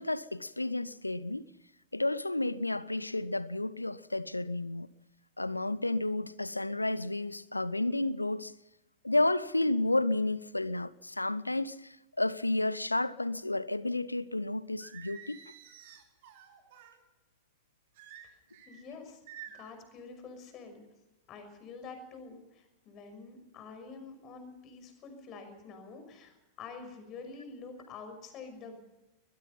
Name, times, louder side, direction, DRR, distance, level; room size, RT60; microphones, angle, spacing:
voice 1, 0.0-1.4 1.9-4.9 5.4-8.5 9.0-15.4, left 2 dB, 85° left, 0.8 m, -31 dB
Singing, 14.8-17.0 17.9-18.8 19.3-19.8, right 9 dB, 50° right, 3.8 m, -50 dB
voice 2, 18.7-19.2 19.5-20.8 21.3-28.8, left 4 dB, 35° left, 5.8 m, -47 dB
22.0 x 21.0 x 5.6 m
figure-of-eight pair, 90°, 0 cm